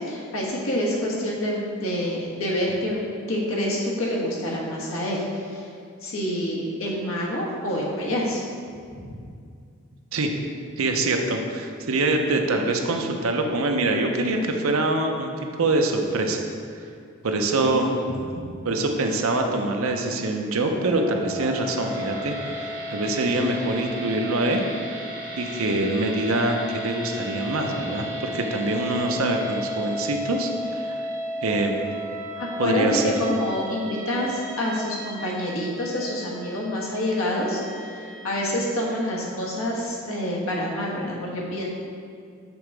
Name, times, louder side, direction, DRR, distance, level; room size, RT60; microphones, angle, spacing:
voice 1, 0.0-5.7 6.0-8.4 8.9-9.1 17.6-18.0 32.4-37.6 38.2-41.7, left 1 dB, 75° left, -4 dB, 1.3 m, -27 dB
voice 2, 10.8-15.3 15.6-16.4 17.2-18.0 18.6-24.6 25.4-31.0 31.4-32.0 32.6-33.1, right 2 dB, 75° right, 3 dB, 0.6 m, -24 dB
sound 1, 20.7-39.0, equal, 40° right, 0.9 m, -34 dB
7.0 x 3.8 x 4.6 m, 2.3 s
head